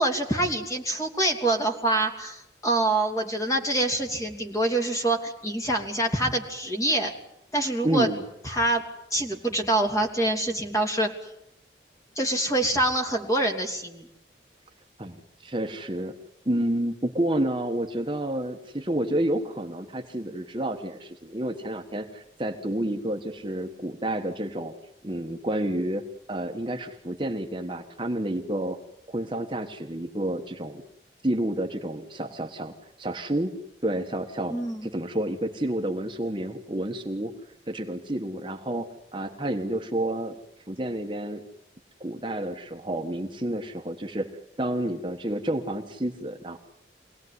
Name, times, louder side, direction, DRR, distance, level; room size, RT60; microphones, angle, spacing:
voice 1, 0.0-7.1 7.5-8.1 8.4-8.8 9.1-11.1 12.2-14.1 34.5-34.9, right 1 dB, 20° left, 2 dB, 3.1 m, -25 dB
voice 2, 7.8-8.3 15.0-16.1 16.4-24.7 25.0-28.8 29.1-30.8 31.2-33.5 33.8-37.3 37.7-40.4 40.7-41.4 42.0-44.3 44.6-46.6, right 1 dB, 25° right, 4 dB, 1.3 m, -30 dB
25.0 x 18.0 x 9.6 m, 0.81 s
head